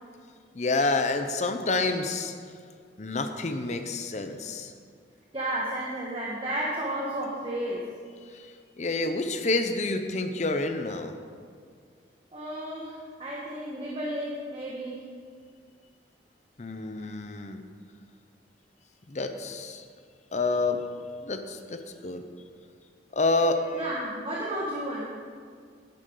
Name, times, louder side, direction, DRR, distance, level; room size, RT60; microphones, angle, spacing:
voice 1, 0.5-2.3 3.0-4.7 8.8-11.1 16.6-17.6 19.1-19.8 20.3-20.8 21.2-22.2 23.1-23.8, left 3 dB, 40° left, 7 dB, 0.7 m, -28 dB
voice 2, 5.3-7.8 12.3-15.0 23.7-25.1, right 1 dB, 30° right, -4 dB, 1.3 m, -32 dB
11.5 x 10.5 x 3.9 m, 2.1 s
head